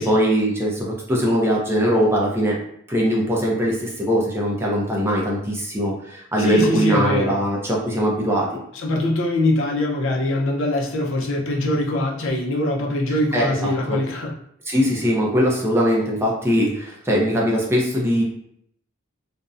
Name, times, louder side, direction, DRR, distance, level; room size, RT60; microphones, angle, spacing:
voice 1, 0.0-2.6 2.9-8.5 13.3-14.0 14.7-18.2, equal, 10° right, -3 dB, 0.4 m, -21 dB
voice 2, 6.4-7.4 8.7-14.3, left 1 dB, 65° left, 0 dB, 0.5 m, -23 dB
2.6 x 2.1 x 2.4 m, 0.71 s
head